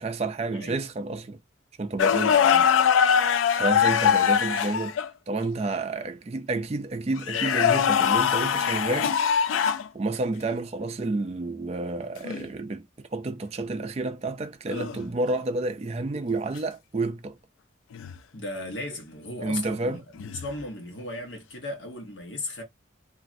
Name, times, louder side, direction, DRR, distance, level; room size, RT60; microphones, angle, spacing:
voice 1, 0.0-1.4 1.8-2.4 3.6-5.0 5.3-9.2 9.9-12.8 13.1-17.4 19.4-20.0, right 2 dB, 30° right, 0.4 m, -30 dB
sound 1, 2.0-5.1 7.2-9.9 12.2-12.4 14.7-15.0 17.9-18.2 20.2-20.5, left 8 dB, 85° left, 0.3 m, -22 dB
voice 2, 2.3-2.7 18.3-22.6, left 2 dB, 65° left, 1.0 m, -36 dB
3.0 x 2.5 x 2.5 m
head